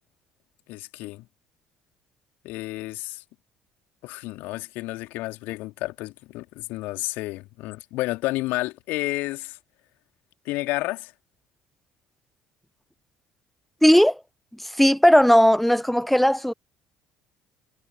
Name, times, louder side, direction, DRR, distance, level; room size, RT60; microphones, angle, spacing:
voice 1, 0.7-1.3 2.4-3.2 4.0-9.6 10.4-11.1, left 20 dB, 60° left, 2.5 m, -31 dB
voice 2, 13.8-14.2 14.8-16.5, equal, 5° left, 0.8 m, -17 dB
figure-of-eight pair, 55°, 4 cm